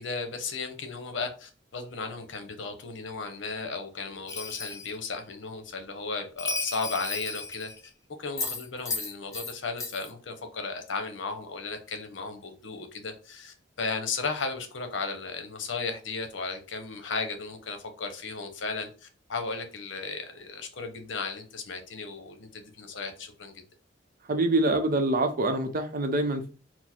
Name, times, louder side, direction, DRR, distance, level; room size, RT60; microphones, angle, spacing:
voice 1, 0.0-7.7 8.2-23.5, left 4 dB, 70° left, 0.8 m, -35 dB
Bell, 4.3-5.0 6.4-7.9 8.4-9.5 9.8-10.1, left 3 dB, 15° left, 0.5 m, -34 dB
voice 2, 24.3-26.5, right 2 dB, 45° right, 0.6 m, -25 dB
4.3 x 2.0 x 4.3 m
head